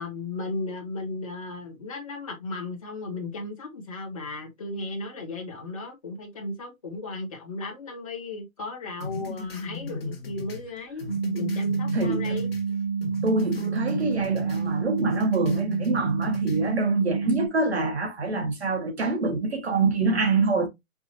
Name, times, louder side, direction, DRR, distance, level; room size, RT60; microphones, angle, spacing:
voice 1, 0.0-12.5, left 2 dB, 25° left, 1.1 m, -35 dB
sound 1, 9.0-12.7 13.0-14.7 15.0-16.6, left 3 dB, 45° left, 1.3 m, -35 dB
sound 2, 11.1-17.5, right 6 dB, 35° right, 1.3 m, -28 dB
voice 2, 11.9-12.4 13.2-20.7, right 3 dB, 50° right, 1.2 m, -25 dB
4.7 x 2.5 x 2.7 m
hypercardioid pair, 170°, 41 cm